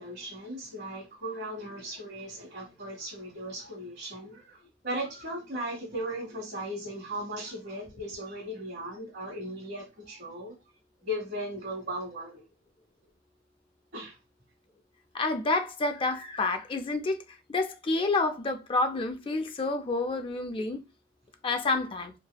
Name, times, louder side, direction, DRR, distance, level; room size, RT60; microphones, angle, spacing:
voice 1, 0.0-4.6 4.8-10.5 11.0-12.4 13.9-14.1, equal, 55° right, 1.3 m, -37 dB
voice 2, 15.1-17.2 17.5-20.8 21.4-22.1, left 3 dB, 25° left, 0.4 m, -29 dB
3.3 x 2.1 x 2.2 m
head